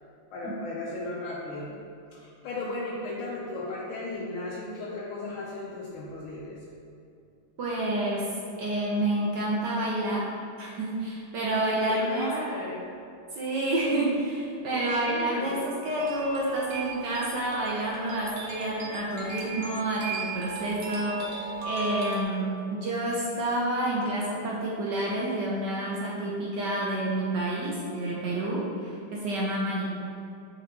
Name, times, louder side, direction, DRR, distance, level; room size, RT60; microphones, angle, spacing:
voice 1, 0.3-1.8 2.1-6.6 11.7-12.9 14.7-15.7 29.6-30.1, left 2 dB, 80° left, -5 dB, 1.5 m, -35 dB
voice 2, 7.6-8.3 8.6-12.3 13.3-29.9, right 1 dB, 65° right, -4 dB, 1.3 m, -29 dB
sound 1, 16.0-22.2, right 4 dB, 85° right, 1.7 m, -37 dB
8.4 x 4.3 x 3.0 m, 2.6 s
omnidirectional pair, 2.3 m